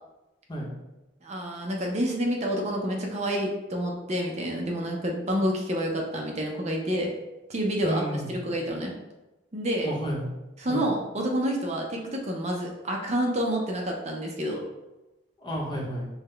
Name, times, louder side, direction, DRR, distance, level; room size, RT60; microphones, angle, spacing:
voice 1, 1.2-7.1 7.5-8.0 8.3-8.9 9.5-9.9 10.6-14.6, equal, 40° right, 0 dB, 0.6 m, -28 dB
voice 2, 7.8-8.4 9.8-10.3 10.7-10.8 15.4-16.1, equal, 25° left, -4 dB, 0.9 m, -31 dB
5.6 x 2.2 x 3.3 m, 1.0 s
head